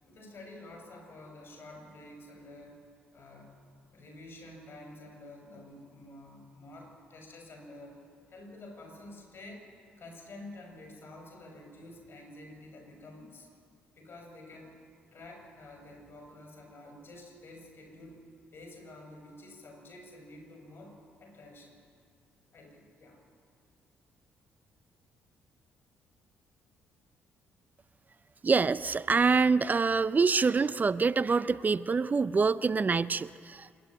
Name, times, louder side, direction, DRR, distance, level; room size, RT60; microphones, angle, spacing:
voice 1, 0.0-2.8 3.1-3.6 3.9-8.0 8.3-9.7 10.0-13.5 13.9-14.8 15.1-18.2 18.5-21.8 22.5-23.2, left 1 dB, 45° left, 2 dB, 6.6 m, -49 dB
voice 2, 28.4-33.7, right 4 dB, 30° right, 16 dB, 0.6 m, -26 dB
26.5 x 11.0 x 9.0 m, 2.2 s
hypercardioid pair, 45°, 5 cm